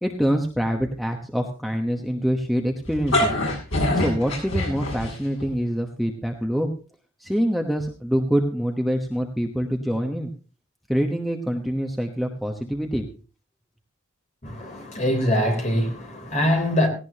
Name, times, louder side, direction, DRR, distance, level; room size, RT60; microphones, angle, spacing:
voice 1, 0.0-3.4 3.9-6.7 7.2-10.3 10.9-13.0, equal, ahead, 1.0 m, -25 dB
sound 1, 2.8-5.4, left 1 dB, 70° left, 7.6 m, -24 dB
voice 2, 14.4-16.9, equal, 35° left, 3.6 m, -23 dB
17.5 x 17.0 x 2.9 m
head